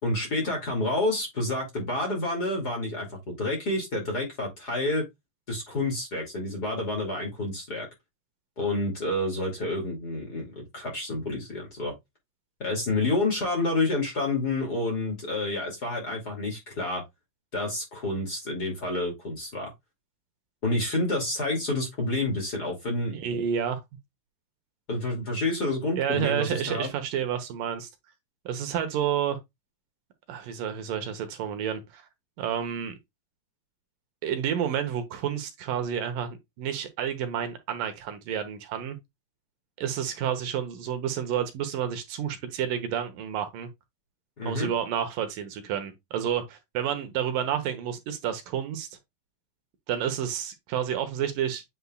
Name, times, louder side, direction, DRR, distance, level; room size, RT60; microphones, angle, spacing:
voice 1, 0.0-5.0 5.5-7.9 8.6-11.9 12.6-17.0 17.5-19.7 20.6-23.2 24.9-26.9 44.4-44.7, left 2 dB, 30° left, 2.5 m, -29 dB
voice 2, 23.1-23.8 26.0-27.9 28.5-29.4 30.3-32.1 32.4-32.9 34.2-39.0 39.8-43.7 44.4-48.9 49.9-51.6, right 9 dB, 75° right, 2.7 m, -30 dB
8.2 x 5.5 x 2.3 m
omnidirectional pair, 4.1 m